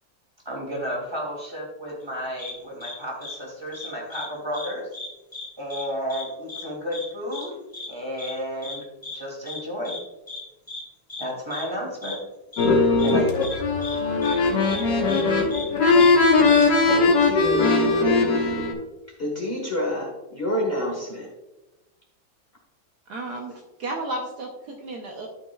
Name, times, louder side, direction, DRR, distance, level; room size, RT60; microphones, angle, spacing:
voice 1, 0.4-4.9 5.6-7.5 7.9-8.9 9.1-10.0 11.2-12.2 13.0-13.5, equal, 15° right, -3 dB, 2.7 m, -32 dB
sound 1, 2.4-2.5 2.8-2.9 3.2-3.3 3.7-4.3 4.5-4.7 4.9-5.4 5.7-5.8 6.1-6.2 6.5-6.6 6.9-7.0 7.3-7.4 7.7-7.9 8.2-8.3 8.6-8.8 9.0-9.2 9.5-9.6 9.8-10.0 10.3-10.4 10.7-10.8 11.1-11.2 11.5-11.6 12.0-12.1 12.5-12.7 13.0-13.1 13.4-13.5 13.8-13.9 14.2-14.3 14.7-14.8 15.1-15.2 15.5-15.6 16.0-16.1 16.4-16.6, left 3 dB, 15° left, 2.1 m, -36 dB
sound 2, 12.6-18.7, left 3 dB, 65° left, 1.9 m, -19 dB
voice 2, 16.6-18.7 19.2-21.3, left 1 dB, 30° left, -2 dB, 1.7 m, -29 dB
voice 3, 23.1-25.3, right 2 dB, 65° right, 1 dB, 1.4 m, -33 dB
12.5 x 6.0 x 2.4 m, 1.0 s
omnidirectional pair, 2.1 m